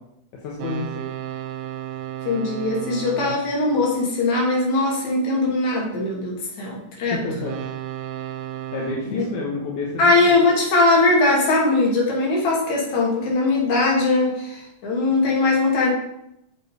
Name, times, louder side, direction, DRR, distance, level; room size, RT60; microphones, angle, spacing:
voice 1, 0.4-1.1 7.1-7.6 8.7-10.4, left 3 dB, 85° left, -2 dB, 2.7 m, -29 dB
sound 1, 0.6-5.0 7.3-10.6, right 12 dB, 90° right, 2.2 m, -35 dB
voice 2, 2.2-7.3 9.1-9.2 10.0-15.9, left 2 dB, 65° left, -2 dB, 3.5 m, -20 dB
7.4 x 6.7 x 4.9 m, 0.79 s
omnidirectional pair, 3.5 m